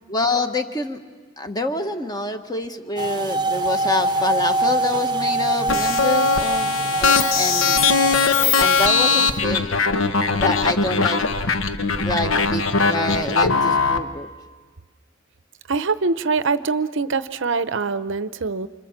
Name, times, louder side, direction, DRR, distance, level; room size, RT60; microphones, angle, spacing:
voice 1, 0.1-1.0 1.4-6.7 7.0-7.8 8.6-9.8 10.4-11.3 12.0-14.3, left 2 dB, 20° left, 6 dB, 1.4 m, -26 dB
sound 1, 3.0-9.4, right 2 dB, 20° right, 0.9 m, -24 dB
sound 2, 5.7-14.0, left 4 dB, 75° left, 1.2 m, -20 dB
voice 2, 15.7-18.7, right 4 dB, 65° right, 13 dB, 0.7 m, -23 dB
29.0 x 26.5 x 7.3 m, 1.4 s
head